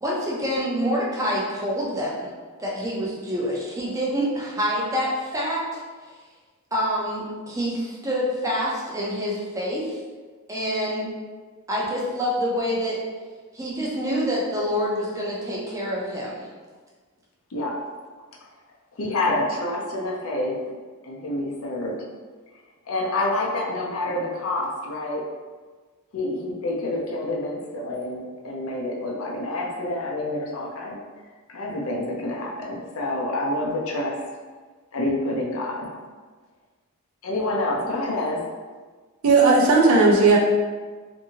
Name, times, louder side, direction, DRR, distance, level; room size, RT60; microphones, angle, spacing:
voice 1, 0.0-2.3 2.6-5.8 6.7-10.0 10.5-11.1 11.7-13.0 13.5-16.5, equal, 15° right, -5 dB, 0.6 m, -26 dB
voice 2, 19.0-20.6 21.0-22.0 22.9-25.2 26.1-31.0 31.5-34.2 34.9-35.9 37.2-38.4, left 2 dB, 65° left, -2 dB, 0.6 m, -27 dB
voice 3, 39.2-40.4, right 3 dB, 75° right, -1 dB, 0.6 m, -15 dB
2.7 x 2.6 x 2.8 m, 1.4 s
head